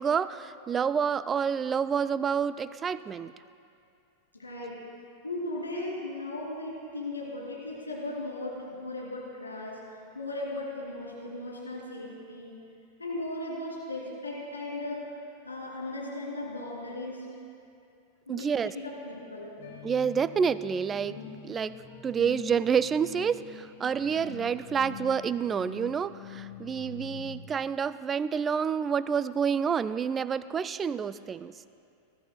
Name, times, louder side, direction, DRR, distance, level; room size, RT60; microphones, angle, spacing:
voice 1, 0.0-3.3 18.3-18.7 19.8-21.2 21.4-31.6, right 7 dB, 20° right, 15 dB, 0.3 m, -28 dB
voice 2, 4.3-4.8 5.2-9.8 10.1-12.5 13.0-15.0 15.4-17.2 18.3-19.5, left 2 dB, 80° left, -4 dB, 2.9 m, -37 dB
sound 1, 19.6-27.5, left 7 dB, 55° left, 2.7 m, -45 dB
20.5 x 14.5 x 2.3 m, 2.5 s
figure-of-eight pair, 90°, 0 cm